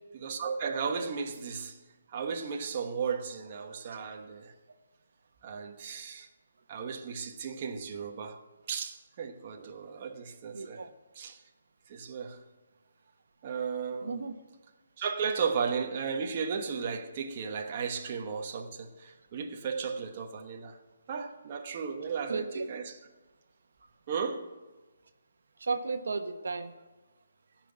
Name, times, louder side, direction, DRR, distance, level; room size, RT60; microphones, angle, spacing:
voice 1, 0.2-1.8 2.1-4.5 5.4-6.3 6.7-8.4 8.7-10.8 11.1-11.4 11.9-12.4 13.4-14.2 15.0-20.8 21.1-23.0 24.1-24.5, right 6 dB, 30° right, 1.0 m, -35 dB
voice 2, 10.5-10.9 14.0-14.3 22.3-22.7 25.6-26.7, right 4 dB, 75° right, 1.2 m, -34 dB
16.0 x 5.9 x 8.8 m
hypercardioid pair, 170°, 0 cm